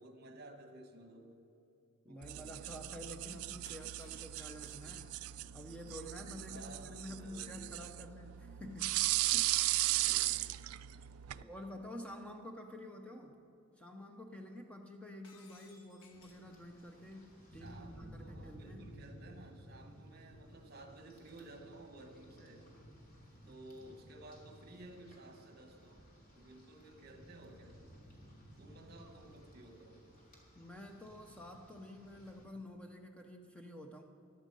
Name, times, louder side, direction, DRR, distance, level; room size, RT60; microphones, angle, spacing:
voice 1, 0.0-1.4 2.0-3.6 4.6-5.0 6.5-7.8 9.9-10.7 11.3-11.7 17.5-22.7 23.5-26.1 26.3-27.8 28.6-30.1, right 2 dB, 50° right, 6 dB, 1.3 m, -55 dB
voice 2, 2.0-9.5 9.9-10.1 11.4-13.4 13.8-18.9 23.4-23.6 30.5-34.0, left 1 dB, 5° left, 3 dB, 0.7 m, -49 dB
sound 1, 2.2-11.4, right 17 dB, 80° right, 0.3 m, -37 dB
Shatter, 3.7-5.3 9.9-11.0 15.2-16.5, left 3 dB, 70° left, 1.4 m, -62 dB
Rain, 16.1-32.4, equal, 45° left, 2.8 m, -57 dB
15.0 x 11.5 x 5.3 m, 2.8 s
head